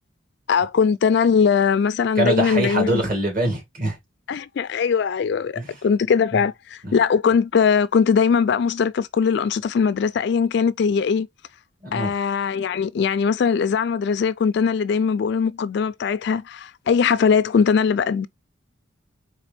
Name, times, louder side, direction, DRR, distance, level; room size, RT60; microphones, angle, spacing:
voice 1, 0.5-3.0 4.3-11.3 11.9-18.3, left 6 dB, 55° left, 0.3 m, -20 dB
voice 2, 2.2-4.0 5.6-5.7 6.8-6.9 11.8-12.1, right 1 dB, 45° right, 2.1 m, -23 dB
4.1 x 3.3 x 3.4 m
head